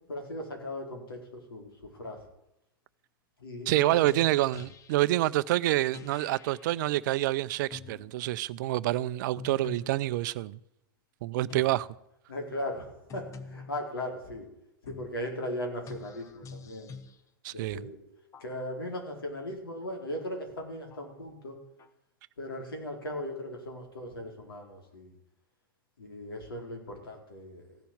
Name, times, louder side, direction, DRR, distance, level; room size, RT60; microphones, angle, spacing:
voice 1, 0.1-2.2 3.4-4.0 11.4-11.5 12.3-14.5 14.8-16.9 17.5-18.0 18.4-21.6 22.4-25.1 26.0-27.8, left 1 dB, 80° left, 4.1 m, -38 dB
voice 2, 3.7-10.6 11.2-11.9 17.4-17.8, right 16 dB, 55° right, 0.6 m, -27 dB
sound 1, 4.1-5.2 5.9-6.7 7.7-8.1 9.4-10.1 11.5-11.9 13.1-13.9 14.9-15.3 15.9-17.2 18.3-19.0 19.8-19.9 20.9-21.1 21.8-21.9, left 5 dB, 25° left, 1.1 m, -46 dB
15.5 x 7.0 x 9.3 m
hypercardioid pair, 100°, 12 cm